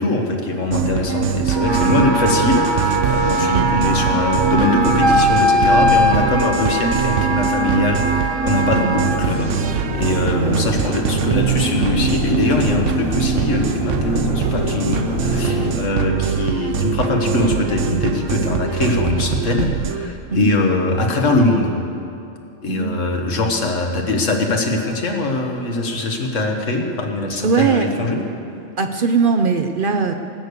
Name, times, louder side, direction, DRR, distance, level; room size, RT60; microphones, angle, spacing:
voice 1, 0.0-21.7 22.6-28.2, left 2 dB, 75° left, 2 dB, 1.8 m, -22 dB
sound 1, 0.7-20.1, right 8 dB, 75° right, 1.0 m, -22 dB
Wind instrument woodwind instrument, 1.5-9.2, equal, 20° right, 1.1 m, -20 dB
sound 2, 8.8-15.7, left 3 dB, 50° left, 1.1 m, -27 dB
voice 2, 10.3-10.7 20.3-20.5 22.7-22.9 27.4-27.9 28.8-30.1, right 5 dB, 50° right, 6 dB, 0.7 m, -20 dB
19.0 x 6.6 x 8.3 m, 2.6 s
omnidirectional pair, 1.3 m